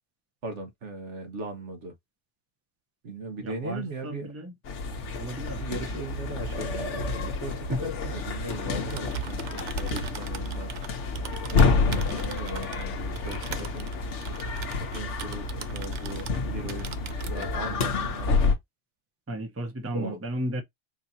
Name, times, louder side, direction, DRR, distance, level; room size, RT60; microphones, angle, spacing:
voice 1, 0.4-1.9 3.0-4.3 5.6-10.7 11.0-11.2 11.5-13.9 14.8-17.0 17.3-18.6 19.9-20.2, right 2 dB, 80° right, 1.5 m, -38 dB
voice 2, 3.4-4.5 5.1-5.6 7.7-7.9 17.7-17.8 19.3-20.6, equal, 15° right, 0.7 m, -34 dB
sound 1, 4.6-18.6, left 4 dB, 85° left, 1.2 m, -29 dB
Typing, 8.7-16.4 16.7-17.5, right 9 dB, 55° right, 0.5 m, -40 dB
4.6 x 2.8 x 2.7 m
omnidirectional pair, 1.2 m